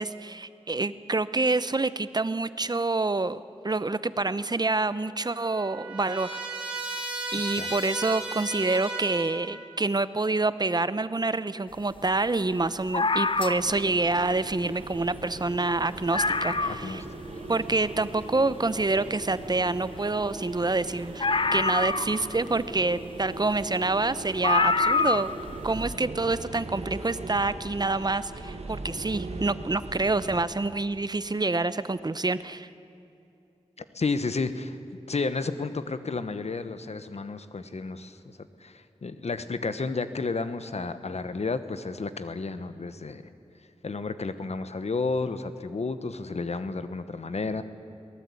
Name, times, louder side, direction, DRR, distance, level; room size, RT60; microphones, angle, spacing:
voice 1, 0.0-6.4 7.3-17.0 17.5-21.3 21.5-25.3 25.6-32.7, right 3 dB, 35° right, 14 dB, 0.8 m, -27 dB
Trumpet, 4.9-9.6, right 2 dB, 10° right, 7.4 m, -35 dB
sound 1, 12.9-13.8 14.9-15.0 15.4-15.5 15.8-15.9 16.1-16.9 17.5-17.6 21.2-22.5 23.6-23.7 24.4-25.4 25.7-25.8, left 3 dB, 50° left, 0.7 m, -25 dB
sound 2, 13.5-30.4, right 2 dB, 70° right, 2.0 m, -40 dB
voice 2, 16.6-17.0 33.9-34.8 35.1-43.2 43.8-47.6, left 3 dB, 70° left, 11 dB, 1.1 m, -32 dB
23.0 x 18.5 x 8.4 m, 2.7 s
wide cardioid pair, 70°, 11 cm